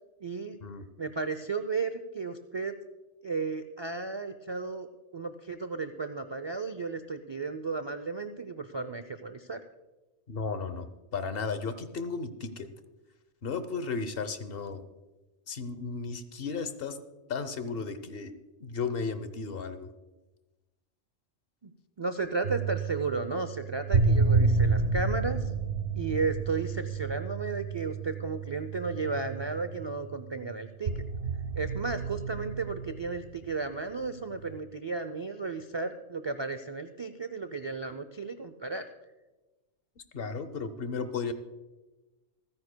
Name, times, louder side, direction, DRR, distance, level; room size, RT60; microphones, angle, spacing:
voice 1, 0.2-0.6 1.0-2.8 3.2-4.9 5.1-9.6 21.6-21.7 22.0-25.5 25.9-31.0 31.6-38.8, right 4 dB, 45° right, 9 dB, 0.3 m, -34 dB
voice 2, 10.3-12.7 13.4-14.9 15.5-17.0 17.3-18.3 18.6-19.9 40.0-41.3, left 4 dB, 60° left, 11 dB, 0.9 m, -34 dB
sound 1, 22.4-30.4 30.9-33.5 34.3-34.6, right 4 dB, 80° right, 1.4 m, -30 dB
27.0 x 9.7 x 2.2 m, 1.1 s
omnidirectional pair, 1.2 m